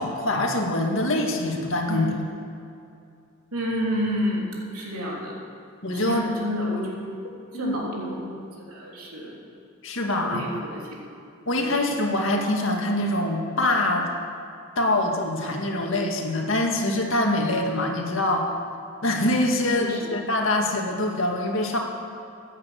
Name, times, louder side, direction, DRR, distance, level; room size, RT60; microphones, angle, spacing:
voice 1, 0.0-2.1 5.8-6.2 7.5-7.8 9.8-10.4 11.5-14.1 14.8-18.5 19.0-21.8, left 1 dB, 65° left, 1 dB, 2.0 m, -24 dB
voice 2, 3.5-4.5 4.7-5.4 5.9-6.9 7.5-8.3 8.7-9.3 10.2-10.8 11.6-11.8 19.8-20.1, equal, 90° right, -3 dB, 3.4 m, -29 dB
15.0 x 10.0 x 8.1 m, 2.6 s
head